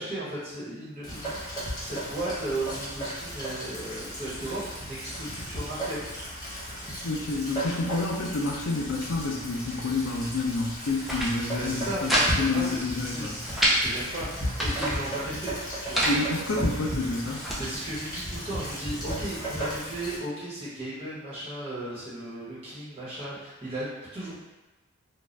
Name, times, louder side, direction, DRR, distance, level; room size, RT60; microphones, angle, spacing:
voice 1, 0.0-6.0 11.6-15.5 15.8-16.1 17.6-24.4, right 1 dB, 30° right, -10 dB, 1.1 m, -36 dB
Rain, 1.0-20.2, equal, 20° left, 0.8 m, -35 dB
voice 2, 7.0-13.4 16.0-17.5, left 3 dB, 75° left, 0 dB, 0.4 m, -29 dB
sound 1, 10.8-11.3 11.7-12.3 12.6-12.7 13.0-13.8 14.3-14.9 15.6-16.2 16.8-17.6, equal, ahead, 0.4 m, -27 dB
2.6 x 2.3 x 3.2 m, 1.1 s
head